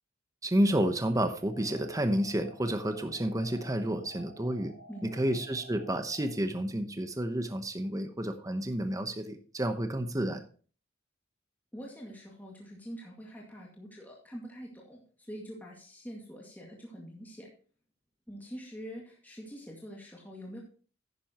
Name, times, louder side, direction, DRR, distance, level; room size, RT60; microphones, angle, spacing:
voice 1, 0.4-4.7 5.1-10.4, right 1 dB, 15° right, 8 dB, 0.9 m, -30 dB
sound 1, 1.3-6.3, equal, 55° right, 5.5 m, -52 dB
voice 2, 4.9-5.2 11.7-17.5 18.3-20.6, equal, 10° left, -2 dB, 2.1 m, -45 dB
10.5 x 10.0 x 3.0 m, 0.39 s
head